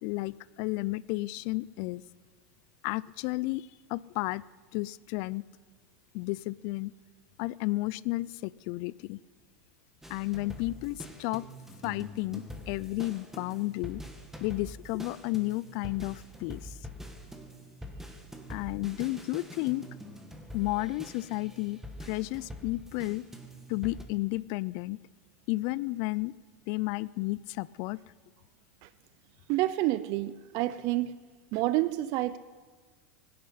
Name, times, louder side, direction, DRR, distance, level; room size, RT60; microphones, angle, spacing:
voice 1, 0.0-2.0 2.8-4.4 4.7-5.4 6.1-6.9 7.4-9.2 10.1-11.4 11.8-14.0 14.4-16.8 18.5-19.9 20.5-23.2 23.7-25.0 25.5-26.3 26.7-28.0, left 20 dB, 55° left, 21 dB, 0.4 m, -32 dB
sound 1, 10.0-24.0, equal, 5° right, 1.9 m, -45 dB
voice 2, 29.5-31.1 31.5-32.4, right 16 dB, 50° right, 15 dB, 0.5 m, -28 dB
23.5 x 10.5 x 5.7 m, 1.4 s
hypercardioid pair, 110°, 8 cm